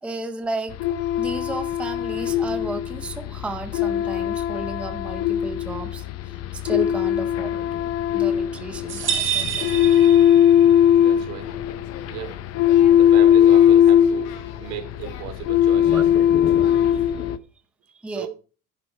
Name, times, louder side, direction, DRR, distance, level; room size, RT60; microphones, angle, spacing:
voice 1, 0.0-0.9 1.2-7.7 8.1-10.1 15.9-16.3 16.6-17.1 17.9-18.3, right 2 dB, 5° right, 0.6 m, -34 dB
sound 1, 0.7-17.4, left 10 dB, 40° left, 0.7 m, -19 dB
sound 2, 8.9-10.8, right 8 dB, 35° right, 1.5 m, -27 dB
voice 2, 10.6-11.8 12.1-12.4 13.0-14.3 14.6-16.1 18.1-18.3, right 9 dB, 70° right, 2.9 m, -36 dB
Singing, 10.9-17.1, left 6 dB, 80° left, 3.3 m, -46 dB
11.0 x 7.6 x 4.7 m
cardioid pair, 150°, 36 cm